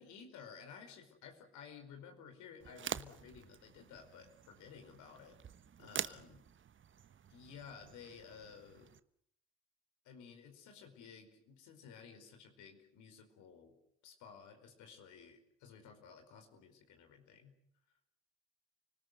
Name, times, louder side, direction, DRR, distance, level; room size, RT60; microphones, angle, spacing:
voice 1, 0.0-5.4 5.8-6.4 7.3-8.9 10.0-13.7 14.0-17.5, left 6 dB, 65° left, 5 dB, 5.0 m, -55 dB
sound 1, 2.6-9.0, right 8 dB, 40° right, 1.2 m, -47 dB
30.0 x 19.5 x 8.0 m, 0.71 s
hypercardioid pair, 55°, 31 cm